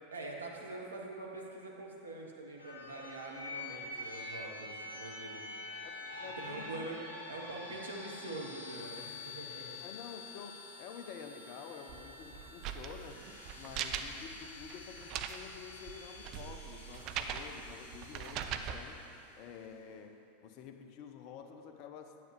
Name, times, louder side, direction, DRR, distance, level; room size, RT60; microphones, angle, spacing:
voice 1, 0.1-5.4 6.4-7.0 7.2-9.8, right 2 dB, 75° right, -1 dB, 1.1 m, -44 dB
sound 1, 2.6-19.3, left 2 dB, 75° left, 2.0 m, -47 dB
voice 2, 5.7-6.9 9.8-13.2 13.5-19.0 19.4-22.2, left 7 dB, 45° left, 6 dB, 0.6 m, -49 dB
sound 2, 11.9-18.8, right 8 dB, 40° right, 0.4 m, -41 dB
9.0 x 8.9 x 3.2 m, 2.7 s
figure-of-eight pair, 85°, 0 cm